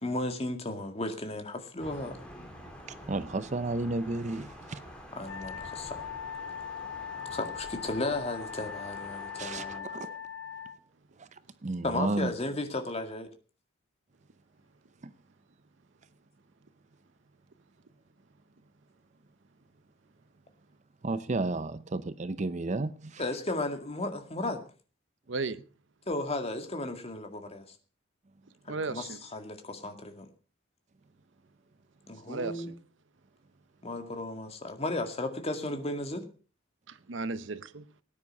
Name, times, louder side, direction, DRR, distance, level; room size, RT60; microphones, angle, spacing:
voice 1, 0.0-2.2 5.1-6.1 7.3-9.9 11.8-13.3 23.2-24.6 26.1-27.8 28.7-30.3 32.1-32.7 33.8-36.2, left 2 dB, 30° left, 2.0 m, -34 dB
Thunder, 1.8-9.8, equal, 5° left, 3.3 m, -47 dB
voice 2, 2.9-4.8 9.4-10.1 11.2-11.3 11.6-12.3 21.0-23.2, right 2 dB, 35° right, 0.6 m, -32 dB
Wind instrument woodwind instrument, 5.2-10.8, left 8 dB, 70° left, 1.1 m, -40 dB
voice 3, 25.3-25.6 28.7-29.2 32.3-32.8 36.9-37.9, right 3 dB, 70° right, 0.8 m, -35 dB
18.0 x 9.8 x 5.4 m
head